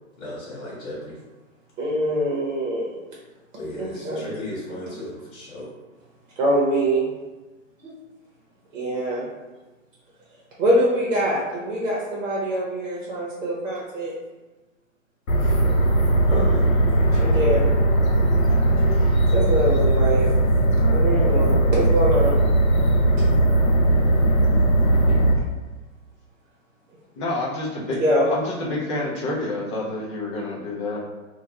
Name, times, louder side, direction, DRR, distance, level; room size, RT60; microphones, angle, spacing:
voice 1, 0.2-1.2 3.6-5.7 16.2-16.7, left 1 dB, 60° left, -8 dB, 1.1 m, -34 dB
voice 2, 1.8-3.0 3.8-4.2 6.4-7.1 7.8-7.9 8.7-9.3 10.6-14.1 16.3-16.5 17.2-17.7 19.3-20.3 20.9-22.4 23.2-23.3 25.1-25.2 27.9-28.3, right 1 dB, 65° right, -5 dB, 0.8 m, -24 dB
sound 1, 15.3-25.3, right 1 dB, 85° left, 0.7 m, -18 dB
voice 3, 27.2-28.0 28.3-31.0, left 2 dB, 25° left, -5 dB, 0.3 m, -28 dB
2.3 x 2.1 x 2.8 m, 1.2 s
hypercardioid pair, 130°, 41 cm